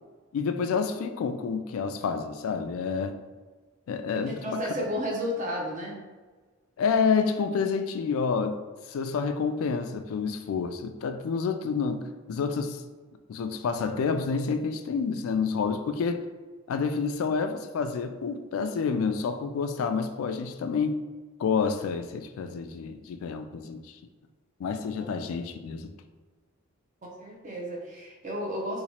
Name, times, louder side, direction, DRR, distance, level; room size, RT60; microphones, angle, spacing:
voice 1, 0.3-3.2 3.9-4.6 6.8-8.6 8.9-12.8 13.3-16.2 16.7-21.0 21.4-24.0 24.6-25.9, left 5 dB, 75° left, 7 dB, 0.3 m, -28 dB
voice 2, 4.3-6.0 27.0-28.8, equal, 35° right, -2 dB, 0.7 m, -33 dB
2.9 x 2.3 x 4.2 m, 1.3 s
head